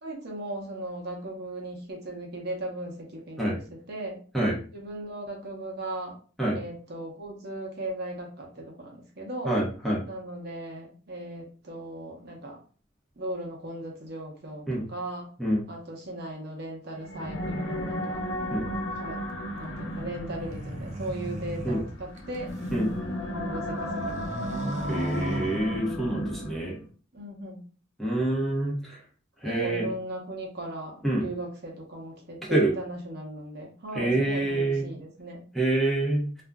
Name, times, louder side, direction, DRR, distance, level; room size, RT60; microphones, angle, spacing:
voice 1, 0.0-3.6 3.9-4.2 4.7-6.2 6.5-9.6 10.0-12.6 13.2-15.3 15.7-18.2 19.0-19.2 19.5-22.5 23.3-25.0 27.1-27.6 29.4-35.4, right 1 dB, 55° right, 0 dB, 0.8 m, -37 dB
voice 2, 9.4-10.0 14.7-14.8 15.4-15.6 18.5-18.7 21.6-21.8 22.7-22.9 24.9-26.8 28.0-29.0 29.4-29.9 31.0-31.2 32.5-32.7 33.9-34.8 35.5-36.3, right 1 dB, ahead, -5 dB, 0.7 m, -26 dB
sound 1, 17.0-26.8, equal, 70° left, 0.6 m, -34 dB
sound 2, 20.2-22.9 23.4-26.2, right 1 dB, 35° right, 0.5 m, -37 dB
2.5 x 2.0 x 3.5 m, 0.40 s
head